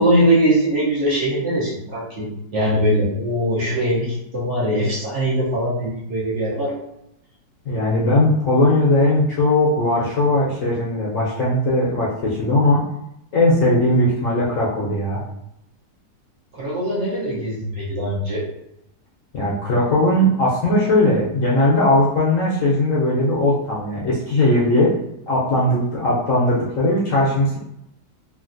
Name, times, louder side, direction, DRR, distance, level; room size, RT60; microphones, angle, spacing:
voice 1, 0.0-2.3 2.5-6.7 16.5-18.4, right 1 dB, 50° right, -7 dB, 1.1 m, -21 dB
voice 2, 7.7-12.8 13.3-15.2 19.3-24.9 25.3-27.6, left 1 dB, 65° left, -5 dB, 0.9 m, -18 dB
3.1 x 2.5 x 2.5 m, 0.82 s
omnidirectional pair, 1.8 m